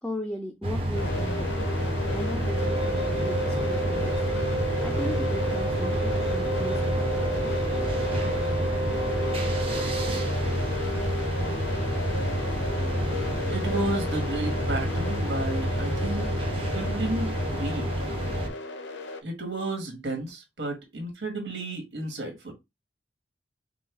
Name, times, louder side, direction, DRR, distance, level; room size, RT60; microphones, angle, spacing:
voice 1, 0.0-4.3 4.8-7.6, left 1 dB, 5° left, 0.4 m, -37 dB
sound 1, 0.6-18.5, equal, 30° right, 0.9 m, -29 dB
sound 2, 0.9-19.2, left 2 dB, 80° left, 0.6 m, -34 dB
Wind instrument woodwind instrument, 2.5-10.3, right 3 dB, 65° right, 1.6 m, -32 dB
voice 2, 13.5-16.3 16.7-17.9 19.2-22.5, right 2 dB, 90° right, 1.7 m, -32 dB
5.4 x 2.3 x 3.4 m
head